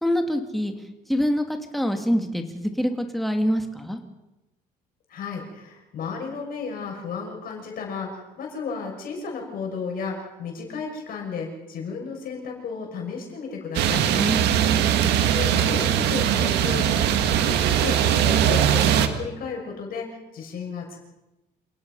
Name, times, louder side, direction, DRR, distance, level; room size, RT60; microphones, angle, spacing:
voice 1, 0.0-0.7 1.1-4.0 14.1-14.4, equal, ahead, 5 dB, 2.4 m, -25 dB
voice 2, 5.1-14.0 15.0-21.0, left 5 dB, 60° left, 0 dB, 6.6 m, -33 dB
sound 1, 13.7-19.1, right 9 dB, 85° right, 1.8 m, -21 dB
28.0 x 17.5 x 5.6 m, 0.99 s
cardioid pair, 110°, 17 cm